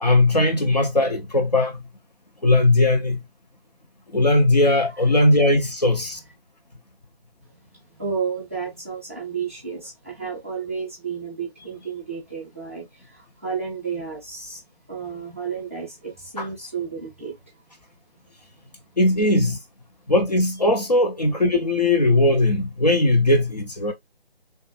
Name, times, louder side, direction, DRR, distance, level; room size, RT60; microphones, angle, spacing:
voice 1, 0.0-1.8 2.4-3.2 4.1-6.2 16.4-16.5 19.0-19.6 20.1-23.9, left 2 dB, 40° left, 0.5 m, -19 dB
voice 2, 4.6-5.5 6.1-6.2 7.5-14.6 14.9-17.6, right 6 dB, 15° right, 0.6 m, -32 dB
3.3 x 2.1 x 3.0 m
figure-of-eight pair, 150°, 31 cm